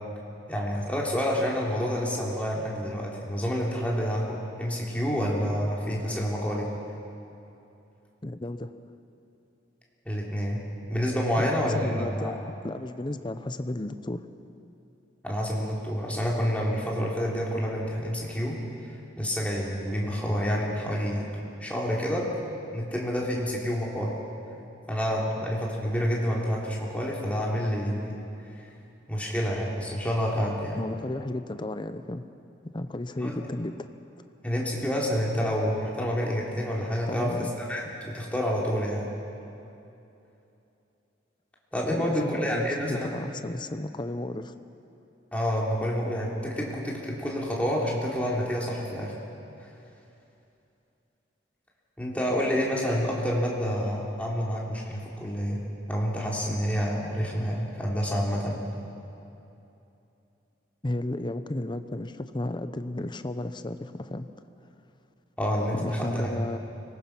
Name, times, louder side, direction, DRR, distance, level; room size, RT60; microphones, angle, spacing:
voice 1, 0.5-6.7 10.1-10.6 10.9-12.3 15.2-18.6 19.2-21.3 21.6-22.3 22.7-24.2 24.9-28.2 29.1-30.8 33.2-33.4 34.4-39.1 41.7-43.2 45.3-49.2 49.6-49.7 52.0-55.6 55.9-58.6 65.4-66.5, equal, 10° left, -4 dB, 3.4 m, -28 dB
voice 2, 8.2-8.7 11.4-14.2 30.8-32.2 32.7-33.7 37.1-37.5 41.9-44.5 60.8-64.3 65.7-66.6, left 1 dB, 25° left, 10 dB, 0.7 m, -33 dB
25.0 x 20.0 x 6.0 m, 2.8 s
head